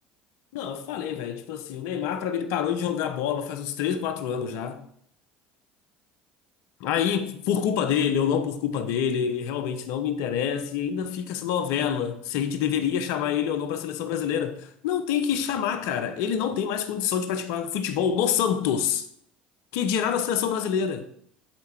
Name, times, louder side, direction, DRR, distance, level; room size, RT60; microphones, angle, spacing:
voice 1, 0.5-4.8 6.8-19.1 19.7-21.1, left 8 dB, 65° left, 0.8 m, -27 dB
12.0 x 4.8 x 4.5 m
hypercardioid pair, 70°, 5 cm